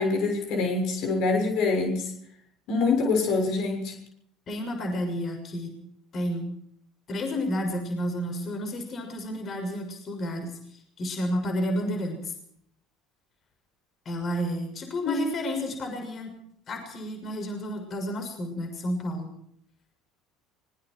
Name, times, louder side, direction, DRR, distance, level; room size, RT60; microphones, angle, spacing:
voice 1, 0.0-2.1 2.7-3.9 15.0-15.3, left 3 dB, 55° left, 3 dB, 6.8 m, -25 dB
voice 2, 4.5-5.8 6.1-6.5 7.1-10.6 11.0-12.3 14.0-16.3 16.7-19.3, equal, 35° left, 5 dB, 6.6 m, -31 dB
25.5 x 22.5 x 4.8 m, 0.70 s
figure-of-eight pair, 65°, 0 cm